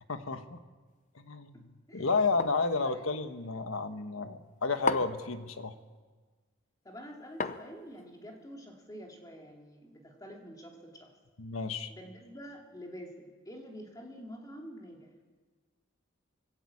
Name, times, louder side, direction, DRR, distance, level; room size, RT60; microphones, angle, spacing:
voice 1, 0.1-0.6 1.1-5.7 11.4-11.9, left 4 dB, 85° left, 9 dB, 1.3 m, -32 dB
sound 1, 2.4-2.7 4.9-5.3 7.4-8.0, left 5 dB, 35° left, 0.7 m, -33 dB
voice 2, 6.8-11.1 11.9-15.1, equal, 20° left, 1 dB, 2.6 m, -47 dB
20.0 x 16.0 x 8.5 m, 1.4 s
head